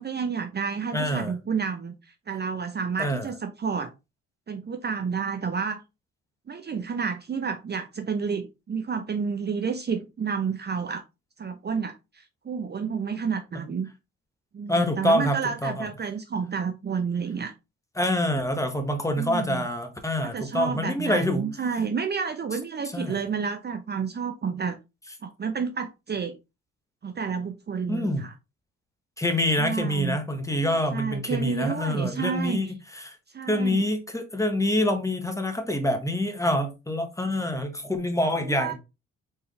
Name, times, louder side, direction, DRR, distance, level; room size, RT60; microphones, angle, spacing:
voice 1, 0.0-1.9 2.3-3.9 4.5-5.8 6.5-11.0 11.4-13.9 14.5-17.5 19.2-19.7 20.2-24.8 25.2-26.4 27.0-28.3 29.6-30.2 30.9-32.6 33.3-33.8 38.3-38.7, right 6 dB, 35° right, 0.7 m, -30 dB
voice 2, 0.9-1.3 3.0-3.3 14.7-15.9 18.0-21.5 22.9-23.2 27.9-28.2 29.2-33.2 33.5-38.7, left 1 dB, 10° left, 1.3 m, -26 dB
4.3 x 3.6 x 3.4 m
cardioid pair, 75°, 29 cm